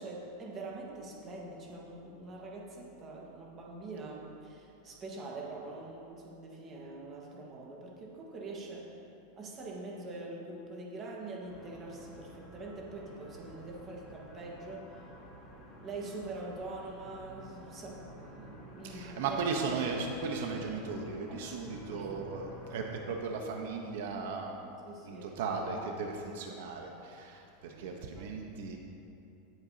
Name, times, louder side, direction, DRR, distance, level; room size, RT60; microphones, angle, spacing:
voice 1, 0.0-9.0 9.4-15.0 15.8-19.4 21.3-22.2 24.6-25.4 27.7-27.8 28.2-28.3, right 2 dB, 25° right, -2 dB, 1.5 m, -44 dB
sound 1, 11.4-23.0, equal, 10° left, 2.4 m, -52 dB
voice 2, 18.8-24.5 25.0-28.8, right 4 dB, 70° right, 2 dB, 1.0 m, -36 dB
17.0 x 7.9 x 2.9 m, 2.8 s
supercardioid pair, 160°, 0 cm